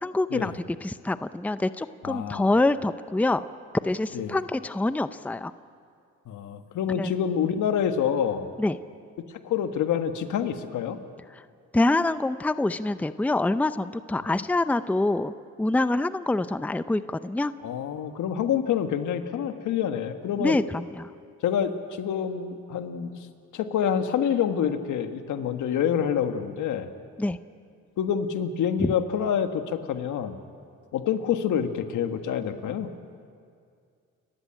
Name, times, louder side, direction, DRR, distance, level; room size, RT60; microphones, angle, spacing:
voice 1, 0.0-3.4 3.8-5.5 6.9-7.1 8.6-8.8 11.3-11.4 11.7-15.3 15.6-17.5 20.4-21.1 27.2-27.4 28.8-28.9, left 2 dB, 5° left, 13 dB, 0.6 m, -26 dB
voice 2, 2.0-2.5 4.1-4.4 6.3-8.5 9.4-11.0 14.3-14.4 17.6-20.6 21.4-23.2 23.5-26.9 28.0-30.4 30.9-32.9, left 8 dB, 80° left, 7 dB, 1.6 m, -27 dB
29.0 x 15.0 x 8.9 m, 2.3 s
cardioid pair, 90°, 30 cm